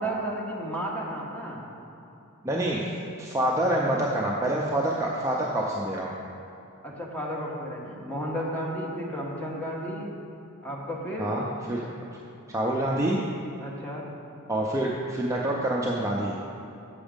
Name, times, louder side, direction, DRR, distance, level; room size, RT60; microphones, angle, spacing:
voice 1, 0.0-1.6 6.8-10.1 10.6-11.3 13.6-14.0, equal, 5° left, -3 dB, 1.2 m, -33 dB
voice 2, 2.4-2.8 3.2-6.1 11.2-11.9 12.5-13.2 14.5-16.3, right 1 dB, 15° right, -3 dB, 0.5 m, -26 dB
7.1 x 6.2 x 5.1 m, 2.9 s
head